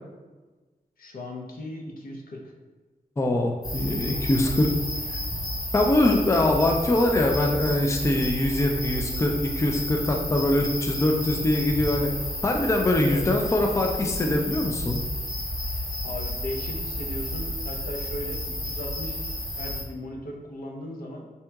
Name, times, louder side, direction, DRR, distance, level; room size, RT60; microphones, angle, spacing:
voice 1, 1.0-2.4 4.4-4.6 13.0-13.2 16.0-19.3 19.6-21.3, left 1 dB, 75° left, 0 dB, 0.6 m, -37 dB
voice 2, 3.2-4.7 5.1-5.2 5.7-12.1 12.4-15.0, left 1 dB, 20° left, 2 dB, 0.3 m, -23 dB
sound 1, 3.6-19.8, left 1 dB, 55° left, 1.4 m, -31 dB
4.3 x 2.8 x 2.3 m, 1.3 s
wide cardioid pair, 110°, 15 cm